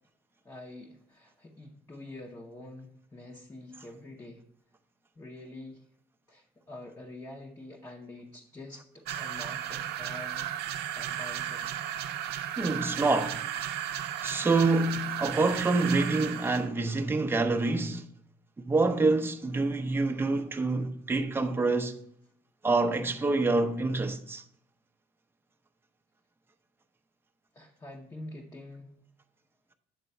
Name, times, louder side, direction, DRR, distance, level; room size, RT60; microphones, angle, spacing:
voice 1, 0.4-4.5 5.2-5.8 6.3-10.4 10.9-11.7 27.5-28.9, left 2 dB, 20° left, 0.8 m, -46 dB
sound 1, 9.1-16.7, right 10 dB, 75° right, 0.6 m, -35 dB
voice 2, 12.6-13.4 14.2-18.1 18.6-22.0 22.6-24.4, right 3 dB, 15° right, 0.6 m, -27 dB
7.9 x 3.7 x 5.4 m
cardioid pair, 110°, 17 cm